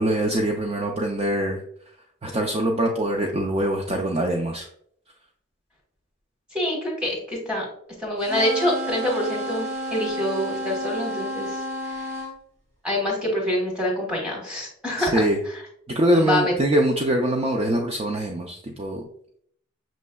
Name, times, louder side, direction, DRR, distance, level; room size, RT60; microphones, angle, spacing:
voice 1, 0.0-1.6 2.2-4.7 15.0-15.4 15.9-19.0, right 1 dB, 25° right, 1 dB, 0.3 m, -23 dB
voice 2, 6.5-7.6 8.0-12.1 12.8-15.6 16.2-16.5, left 1 dB, 5° right, -4 dB, 1.2 m, -26 dB
sound 1, 8.2-12.3, equal, 50° right, 1.3 m, -31 dB
6.1 x 3.1 x 2.2 m, 0.66 s
head